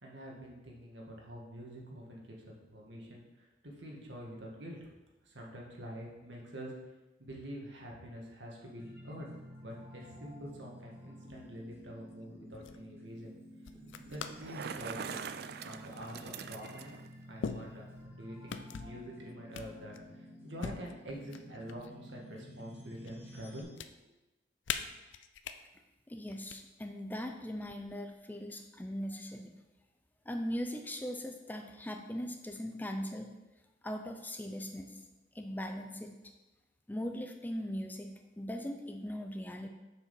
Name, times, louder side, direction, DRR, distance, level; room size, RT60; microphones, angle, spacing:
voice 1, 0.0-4.9 5.2-6.7 7.2-9.3 9.6-13.3 14.0-15.2 15.6-16.9 17.3-20.0 20.4-23.9, equal, 75° right, -1 dB, 1.8 m, -46 dB
sound 1, 8.8-23.6, equal, 10° right, 1.2 m, -52 dB
sound 2, 11.7-12.1 12.5-12.8 13.6-14.5 14.9-15.3 16.3-16.4 17.4-18.1 18.5-19.0 19.5-20.1 20.6-21.9 22.3-23.1 23.4-23.9 24.7-25.6 26.3-26.6 27.6-28.1, left 6 dB, 85° left, 0.5 m, -42 dB
Bicycle, 14.2-17.1, right 6 dB, 55° right, 0.4 m, -43 dB
voice 2, 26.1-29.5 30.3-33.3 33.8-35.0 35.3-36.2 36.9-39.7, equal, 10° left, 5 dB, 0.4 m, -39 dB
6.8 x 5.0 x 5.3 m, 1.1 s
head